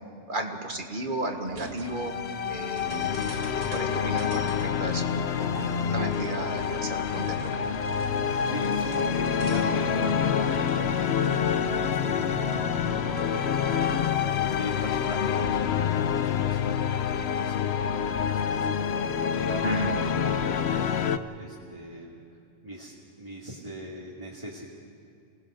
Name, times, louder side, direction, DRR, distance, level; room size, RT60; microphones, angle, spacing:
voice 1, 0.3-2.1 2.5-7.7 19.6-20.0, right 2 dB, 40° right, 4 dB, 1.7 m, -34 dB
sound 1, 1.5-14.3, right 4 dB, 80° right, 1.8 m, -41 dB
sound 2, 1.9-21.2, left 7 dB, 60° left, 1.0 m, -27 dB
voice 2, 8.1-11.5 11.7-12.5 13.0-21.1 21.4-24.7, right 1 dB, 25° right, -4 dB, 2.2 m, -42 dB
27.5 x 19.0 x 6.5 m, 2.4 s
omnidirectional pair, 1.3 m